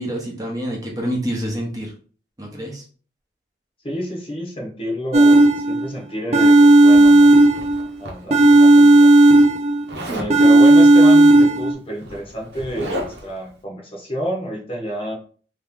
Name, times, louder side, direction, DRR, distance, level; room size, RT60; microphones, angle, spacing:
voice 1, 0.0-1.9 2.4-2.8, equal, 20° right, -1 dB, 0.9 m, -27 dB
voice 2, 3.8-7.3 8.0-9.1 10.0-15.1, equal, 30° left, -1 dB, 1.0 m, -29 dB
sound 1, 5.1-5.9 6.3-7.9 8.3-9.9 10.3-11.7, right 2 dB, 35° right, 0.3 m, -11 dB
Zipper (clothing), 6.9-8.6 9.9-10.4 11.5-11.6 11.9-13.4, equal, 80° right, 1.0 m, -33 dB
3.2 x 2.9 x 3.6 m, 0.41 s
head